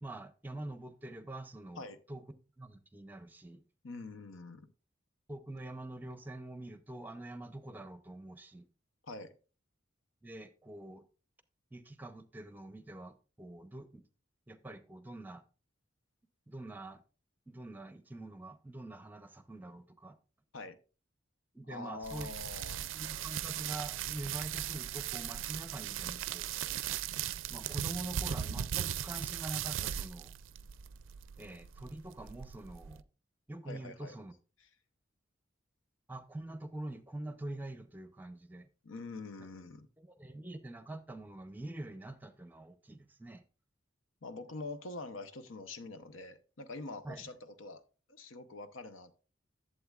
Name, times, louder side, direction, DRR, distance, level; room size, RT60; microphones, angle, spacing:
voice 1, 0.0-2.2 2.6-3.6 5.3-8.7 10.2-11.0 11.7-14.0 14.5-15.4 16.5-17.0 17.5-20.2 21.5-22.3 22.9-26.5 27.5-30.3 31.4-33.0 33.5-34.3 36.1-38.7 40.0-43.4 47.0-47.2, right 2 dB, 10° right, 0.6 m, -45 dB
voice 2, 3.8-4.7 9.0-9.3 20.5-20.8 21.7-23.0 33.7-34.1 38.8-39.9 44.2-47.8 48.1-49.1, left 3 dB, 85° left, 0.8 m, -45 dB
sound 1, 22.0-33.0, right 10 dB, 80° right, 0.4 m, -38 dB
11.5 x 7.7 x 2.4 m
head